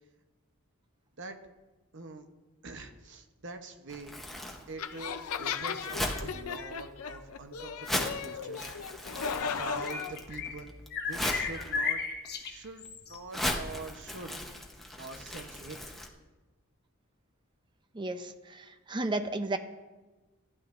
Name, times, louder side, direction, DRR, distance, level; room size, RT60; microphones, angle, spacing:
voice 1, 1.9-2.3 2.6-4.2 4.7-8.8 9.4-10.7 11.0-12.0 12.4-14.4 15.0-15.8, right 3 dB, 55° right, 6 dB, 0.9 m, -44 dB
Crumpling crinkling, 3.9-16.1, left 1 dB, ahead, 0.9 m, -38 dB
sound 1, 4.8-10.2, left 6 dB, 80° left, 0.6 m, -36 dB
sound 2, 9.4-10.6 10.9-13.2, left 5 dB, 50° left, 1.2 m, -35 dB
voice 2, 17.9-19.6, right 2 dB, 20° right, 8 dB, 0.6 m, -33 dB
15.0 x 11.0 x 2.6 m, 1.2 s
head